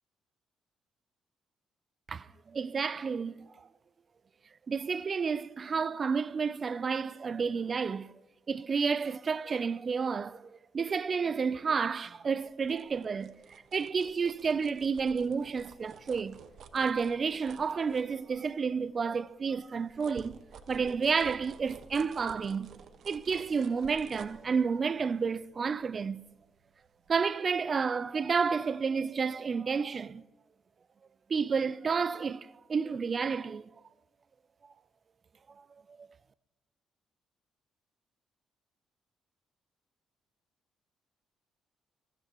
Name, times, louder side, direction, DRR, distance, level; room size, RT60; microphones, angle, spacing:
voice 1, 2.1-3.5 4.7-8.1 8.5-10.5 10.7-13.3 13.7-16.4 16.7-20.4 20.7-22.7 23.0-26.2 27.1-30.2 31.3-33.7, right 5 dB, 40° right, 0.5 m, -30 dB
sound 1, 12.4-18.7 19.1-26.7 27.1-27.2, right 6 dB, 65° right, 1.4 m, -52 dB
23.0 x 17.0 x 3.1 m
cardioid pair, 90°, 0 cm